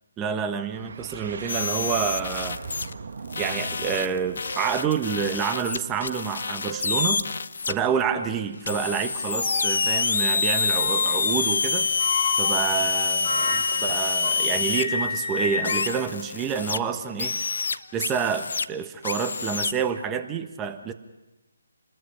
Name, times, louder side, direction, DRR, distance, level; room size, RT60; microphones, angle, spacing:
voice 1, 0.2-2.6 3.4-7.2 7.7-11.9 12.4-17.4 17.9-20.9, right 7 dB, 15° right, 7 dB, 1.2 m, -28 dB
sound 1, 0.7-5.5, right 5 dB, 55° right, 1.7 m, -39 dB
sound 2, 1.2-1.3 1.6-2.0 2.8-2.9 4.1-4.9 5.3-5.5 5.9-6.1 6.7-7.0 7.6-8.4 9.4-9.8 10.8-11.4 12.0-14.5 14.7-17.0, left 4 dB, 40° left, 3.6 m, -33 dB
sound 3, 1.5-2.9 3.3-7.7 8.6-14.8 15.6-16.8 17.2-18.7 19.0-19.7, left 4 dB, 65° left, 0.8 m, -27 dB
29.0 x 20.5 x 5.7 m, 1.0 s
figure-of-eight pair, 150°, 0 cm